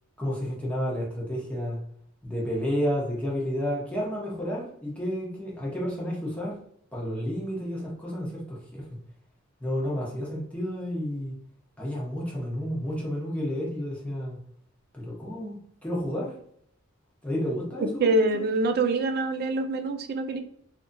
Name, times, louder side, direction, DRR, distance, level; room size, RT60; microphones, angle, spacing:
voice 1, 0.2-1.8 2.2-6.6 6.9-9.0 9.6-11.3 11.8-14.4 14.9-16.3 17.2-18.1 18.3-18.4, equal, 5° left, -4 dB, 0.8 m, -31 dB
voice 2, 17.8-20.4, right 2 dB, 50° right, 7 dB, 0.4 m, -25 dB
2.7 x 2.5 x 2.5 m, 0.68 s
head